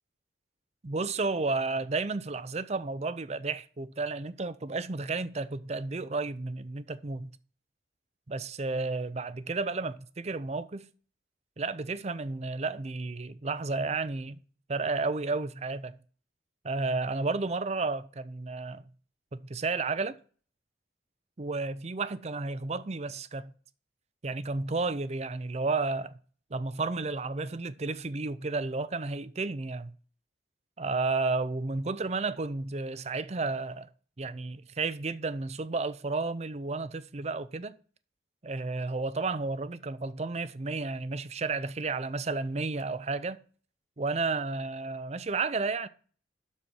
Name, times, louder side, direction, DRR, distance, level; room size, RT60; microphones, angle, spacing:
voice 1, 0.8-7.3 8.3-10.9 11.6-14.4 14.7-16.0 16.6-18.8 19.5-20.2 21.4-23.5 24.2-26.1 26.5-29.9 30.8-33.9 34.2-37.7 38.4-43.4 44.0-45.9, right 3 dB, 35° right, 0.6 m, -32 dB
12.5 x 4.4 x 6.3 m
head